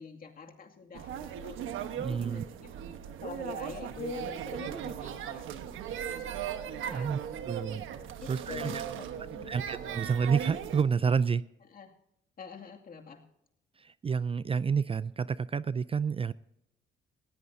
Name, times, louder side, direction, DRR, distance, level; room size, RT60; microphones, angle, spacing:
voice 1, 0.0-1.6 2.1-2.7 3.2-5.5 6.8-7.1 8.2-9.6 11.6-11.9 12.4-13.3, left 6 dB, 45° left, 3 dB, 2.4 m, -45 dB
sound 1, 0.9-10.8, right 9 dB, 85° right, 1.2 m, -38 dB
voice 2, 2.0-2.4 6.9-7.2 7.5-7.8 8.3-8.8 9.5-11.4 13.8-16.3, right 6 dB, 30° right, 17 dB, 0.4 m, -29 dB
19.5 x 16.0 x 2.7 m, 0.81 s
cardioid pair, 90°, 20 cm